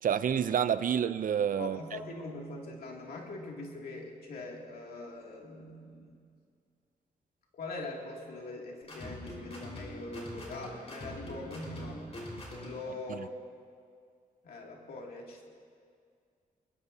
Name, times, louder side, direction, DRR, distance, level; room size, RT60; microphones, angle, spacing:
voice 1, 0.0-2.0 13.1-13.2, right 8 dB, 65° right, 0.6 m, -29 dB
voice 2, 1.6-6.2 7.5-12.1 12.6-13.4 14.4-15.4, left 2 dB, 85° left, 2.6 m, -42 dB
sound 1, 8.8-12.9, left 1 dB, 45° left, 5.0 m, -43 dB
21.0 x 21.0 x 2.8 m
cardioid pair, 85°, 15 cm